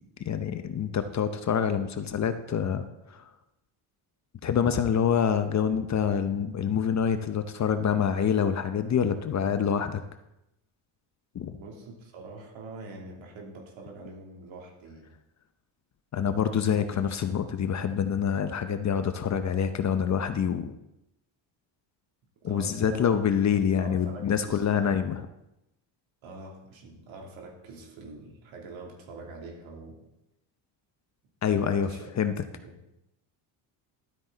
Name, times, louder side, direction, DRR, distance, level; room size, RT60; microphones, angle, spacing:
voice 1, 0.2-3.2 4.4-10.0 11.3-11.6 16.1-20.7 22.4-25.2 31.4-31.9 32.2-32.3, left 7 dB, 35° left, 9 dB, 0.7 m, -26 dB
voice 2, 11.5-15.1 22.4-23.1 23.5-25.0 26.2-30.0 31.5-32.0 32.6-32.7, right 3 dB, 70° right, 0 dB, 3.1 m, -44 dB
12.0 x 8.8 x 3.9 m, 0.87 s
cardioid pair, 115°, 49 cm